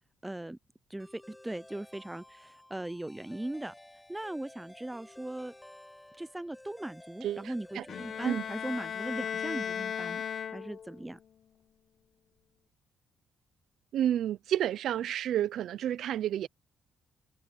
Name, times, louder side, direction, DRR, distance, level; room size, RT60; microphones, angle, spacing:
voice 1, 0.2-0.6 0.9-3.7 4.1-5.5 6.2-10.2 10.5-11.2, right 1 dB, 10° right, 0.7 m, -39 dB
sound 1, 1.0-9.1, left 1 dB, 10° left, 4.9 m, -54 dB
voice 2, 7.2-7.8 8.2-8.4 13.9-16.5, right 11 dB, 75° right, 0.6 m, -30 dB
Bowed string instrument, 7.9-11.1, left 8 dB, 55° left, 1.1 m, -36 dB
cardioid pair, 90°, 0 cm